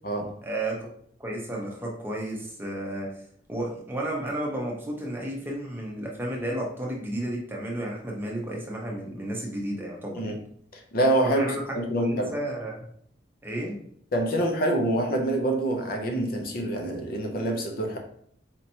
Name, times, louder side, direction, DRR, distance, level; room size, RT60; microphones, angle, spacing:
voice 1, 0.4-0.9 1.2-3.1 3.5-10.2 11.2-12.9 13.4-13.8, right 1 dB, 10° right, -2 dB, 0.7 m, -32 dB
voice 2, 10.7-11.4 11.7-12.3 14.1-18.0, right 1 dB, 50° left, 2 dB, 0.6 m, -26 dB
4.3 x 2.9 x 2.7 m, 0.64 s
head